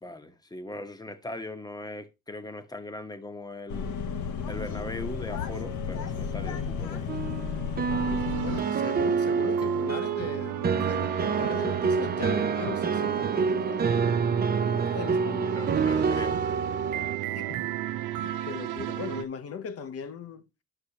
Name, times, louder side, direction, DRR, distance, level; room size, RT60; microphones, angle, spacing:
voice 1, 0.0-3.9 4.5-7.1 14.8-15.0 15.6-16.4 16.9-17.5, left 2 dB, 15° left, 1.0 m, -40 dB
sound 1, 3.7-8.6, left 6 dB, 75° left, 1.0 m, -33 dB
sound 2, 7.1-17.2, right 5 dB, 30° right, 0.6 m, -27 dB
sound 3, 7.9-19.2, right 12 dB, 85° right, 0.6 m, -34 dB
voice 2, 8.1-13.9 14.9-15.5 17.3-17.7 18.2-20.4, left 6 dB, 50° left, 0.8 m, -38 dB
9.9 x 6.0 x 2.9 m
cardioid pair, 90°, 30 cm